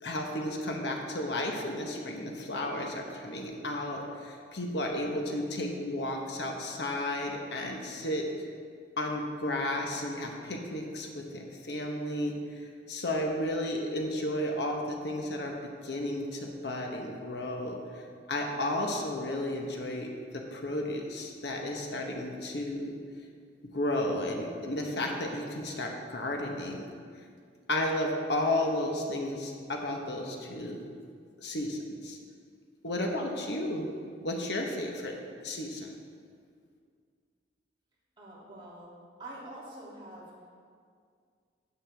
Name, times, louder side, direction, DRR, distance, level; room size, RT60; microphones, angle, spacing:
voice 1, 0.0-8.2 9.0-12.4 12.9-15.5 15.8-17.8 18.3-22.9 23.7-26.8 27.7-30.8 31.4-32.2 32.8-33.9 34.2-35.2 35.4-35.9, left 1 dB, 65° left, 1 dB, 1.1 m, -33 dB
voice 2, 38.2-38.9 39.2-40.3, right 1 dB, 25° right, -8 dB, 2.7 m, -45 dB
12.5 x 8.2 x 3.5 m, 2.1 s
head